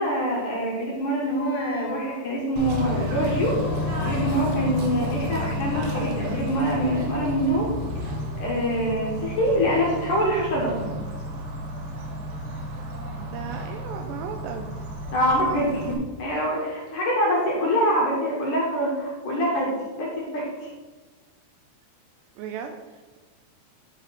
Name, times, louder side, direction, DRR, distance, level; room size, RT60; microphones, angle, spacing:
voice 1, 0.0-3.6 4.0-7.7 8.4-10.9 15.1-19.7 20.0-20.7, equal, 60° left, -3 dB, 2.4 m, -25 dB
sound 1, 1.3-9.1, left 6 dB, 85° left, 3.0 m, -41 dB
Bird / Train, 2.6-15.9, equal, 65° right, 2.0 m, -31 dB
voice 2, 13.2-14.7 22.4-23.2, right 7 dB, 80° right, 5 dB, 2.5 m, -36 dB
10.5 x 4.7 x 5.8 m, 1.3 s
omnidirectional pair, 5.3 m